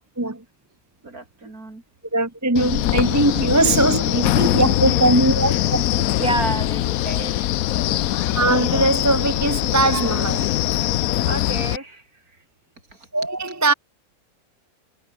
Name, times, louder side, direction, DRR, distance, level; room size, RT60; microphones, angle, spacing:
voice 1, 1.0-1.8 5.5-5.6 6.2-7.5 7.9-8.3 11.3-12.4 12.9-13.1, right 2 dB, 50° right, 5.3 m, -30 dB
voice 2, 2.1-6.0 8.3-10.5 13.1-13.7, right 2 dB, 10° right, 1.2 m, -20 dB
Wind, 2.6-11.8, left 14 dB, 70° left, 0.9 m, -22 dB
omnidirectional pair, 2.0 m